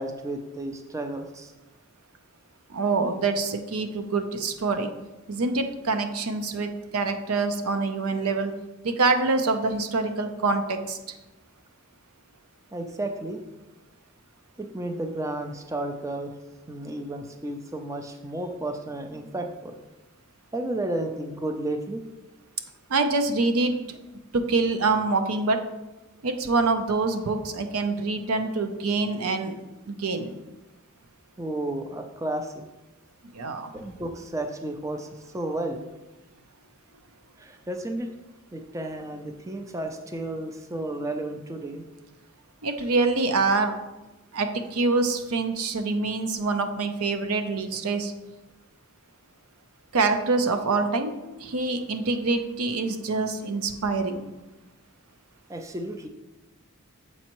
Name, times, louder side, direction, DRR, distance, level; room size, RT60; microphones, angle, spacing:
voice 1, 0.0-1.5 12.7-13.4 14.6-16.3 16.7-19.8 20.5-22.0 31.4-32.6 33.7-35.8 37.4-38.1 38.5-41.9 55.5-56.1, right 1 dB, 15° right, 5 dB, 0.4 m, -32 dB
voice 2, 2.7-4.9 5.3-8.5 8.8-11.0 22.9-24.0 24.3-25.6 26.2-29.5 29.9-30.3 33.3-33.7 42.6-43.7 44.3-48.1 49.9-54.3, right 3 dB, 90° right, 7 dB, 0.6 m, -25 dB
7.1 x 5.3 x 3.0 m, 1.1 s
head